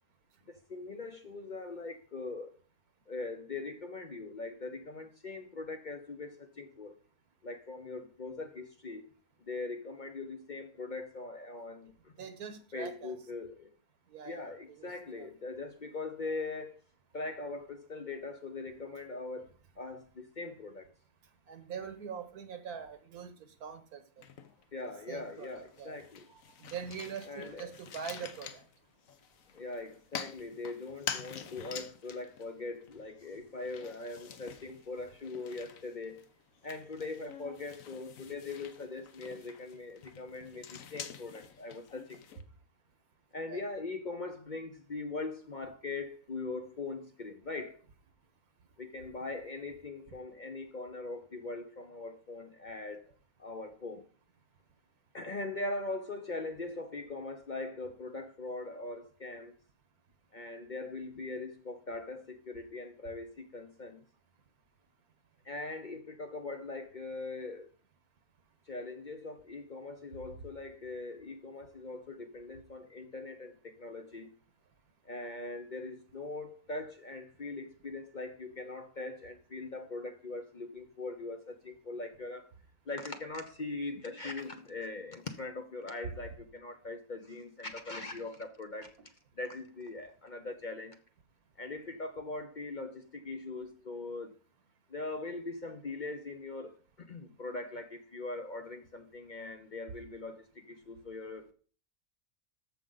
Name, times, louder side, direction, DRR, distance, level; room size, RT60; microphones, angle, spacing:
voice 1, 0.5-2.5 3.1-6.9 7.4-9.0 9.4-12.1 12.7-13.7 14.2-16.7 17.1-19.5 19.8-20.9 24.7-26.3 27.3-27.7 29.5-36.3 36.6-42.4 43.3-47.8 48.8-53.0 53.4-54.0 55.1-59.5 60.3-64.0 65.4-67.7 68.7-74.3 75.0-82.5 82.9-88.9 89.4-91.0 91.6-94.3 94.9-101.5, left 3 dB, 45° left, 0.7 m, -41 dB
voice 2, 12.2-13.1 14.1-14.9 15.1-15.3 21.5-23.3 23.6-24.0 25.1-26.0 26.3-28.6 43.5-43.6, right 7 dB, 90° right, 1.6 m, -43 dB
sound 1, 24.2-24.9 25.3-42.4, left 8 dB, 65° left, 1.2 m, -47 dB
14.0 x 5.0 x 3.9 m
omnidirectional pair, 1.5 m